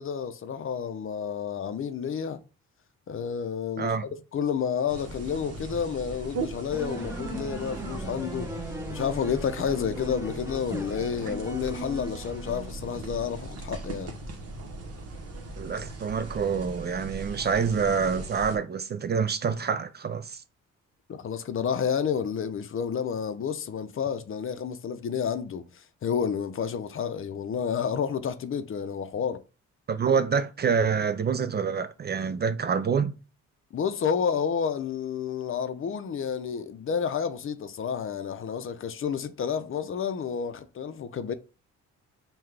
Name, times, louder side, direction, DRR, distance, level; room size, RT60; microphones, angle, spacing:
voice 1, 0.0-2.4 3.1-8.5 8.9-14.1 21.1-29.4 33.7-41.3, left 7 dB, 45° left, 0.6 m, -30 dB
sound 1, 4.9-18.6, right 2 dB, 55° right, 1.1 m, -39 dB
sound 2, 6.7-13.4, right 1 dB, 10° right, 0.9 m, -39 dB
voice 2, 15.6-20.4 29.9-33.1, right 6 dB, 35° right, 0.4 m, -27 dB
5.7 x 2.3 x 3.3 m
cardioid pair, 90°, 30 cm